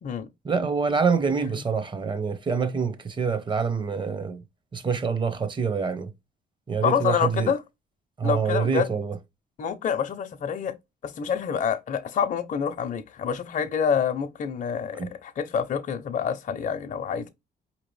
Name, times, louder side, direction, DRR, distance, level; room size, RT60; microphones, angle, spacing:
voice 1, 0.4-4.4 4.7-6.1 6.7-7.5 8.2-9.2 15.0-15.1, right 5 dB, 30° right, 0.8 m, -26 dB
voice 2, 6.8-7.6 8.2-8.9 9.6-10.7 11.0-17.3, left 7 dB, 50° left, 0.6 m, -27 dB
4.8 x 2.8 x 3.1 m
cardioid pair, 105°, 17 cm